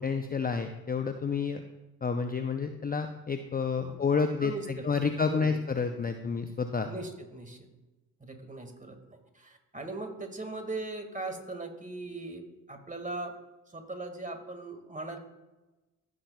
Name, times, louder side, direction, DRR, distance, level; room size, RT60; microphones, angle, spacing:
voice 1, 0.0-1.6 2.0-6.9, left 5 dB, 20° left, 7 dB, 0.6 m, -30 dB
voice 2, 4.4-5.6 6.9-7.7 8.2-13.4 13.7-15.2, right 2 dB, 15° right, 5 dB, 2.0 m, -39 dB
15.5 x 6.0 x 2.4 m, 1.1 s
hypercardioid pair, 50°, 45 cm